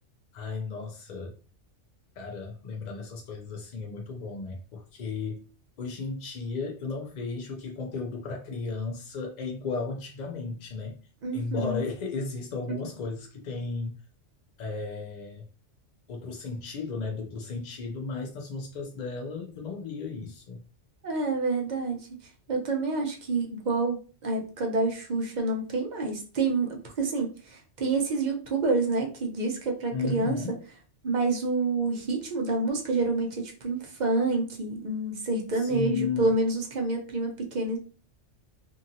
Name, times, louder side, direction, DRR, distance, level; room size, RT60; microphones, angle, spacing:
voice 1, 0.3-1.3 2.2-5.5 5.8-11.0 11.3-14.0 14.6-15.5 16.1-20.6 29.9-30.5 35.6-36.3, left 4 dB, 60° left, 0 dB, 0.4 m, -34 dB
voice 2, 11.2-11.8 21.0-22.1 22.5-30.4 31.0-37.8, right 3 dB, 45° right, 1 dB, 0.7 m, -28 dB
2.7 x 2.7 x 2.6 m, 0.37 s
omnidirectional pair, 1.2 m